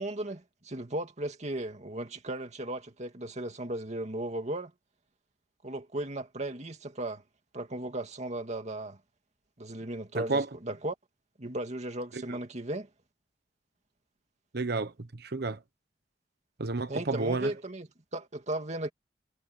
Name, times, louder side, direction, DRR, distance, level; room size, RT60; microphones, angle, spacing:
voice 1, 0.0-4.7 5.6-7.2 7.5-9.0 9.6-11.0 11.4-12.9 16.9-18.9, right 1 dB, 40° right, 2.3 m, -36 dB
voice 2, 10.1-10.5 12.1-12.4 14.5-15.6 16.6-17.5, right 3 dB, 60° right, 1.1 m, -31 dB
head